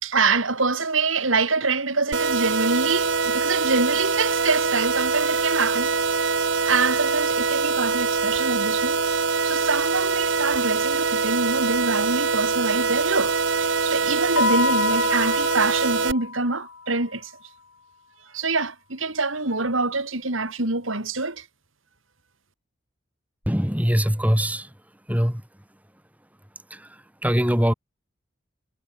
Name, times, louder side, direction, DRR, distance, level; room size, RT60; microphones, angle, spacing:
voice 1, 0.0-5.9 6.6-9.0 9.4-17.3 18.3-21.4, right 3 dB, 85° right, 4.6 m, -25 dB
sound 1, 2.1-16.1, right 4 dB, 65° right, 1.7 m, -23 dB
Keyboard (musical), 14.4-16.9, left 5 dB, 80° left, 1.6 m, -27 dB
voice 2, 23.5-24.7 25.1-25.4 26.7-27.7, equal, 10° right, 2.0 m, -22 dB
head